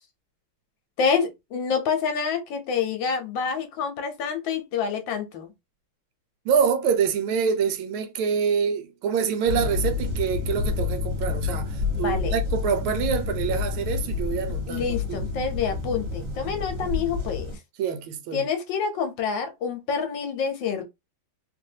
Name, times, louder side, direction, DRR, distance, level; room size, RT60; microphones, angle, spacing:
voice 1, 1.0-5.5 12.0-12.4 14.7-17.5 18.3-20.8, left 6 dB, 70° left, 1.4 m, -27 dB
voice 2, 6.4-15.3 17.8-18.5, right 7 dB, 85° right, 1.5 m, -26 dB
sound 1, 9.5-17.6, left 5 dB, 45° right, 1.6 m, -29 dB
3.4 x 2.6 x 2.7 m
omnidirectional pair, 2.2 m